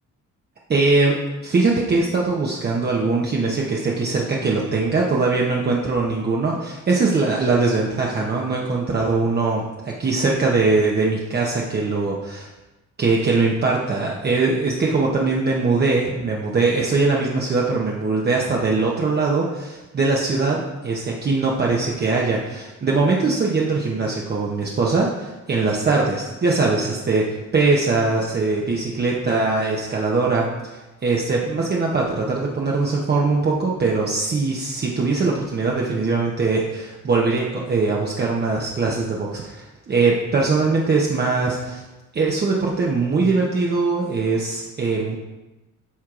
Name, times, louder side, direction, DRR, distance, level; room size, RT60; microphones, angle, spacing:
voice 1, 0.7-1.2 1.4-12.5 13.0-41.8 42.1-45.2, right 3 dB, 30° right, -3 dB, 0.7 m, -21 dB
12.5 x 4.5 x 2.4 m, 1.1 s
wide cardioid pair, 155°, 32 cm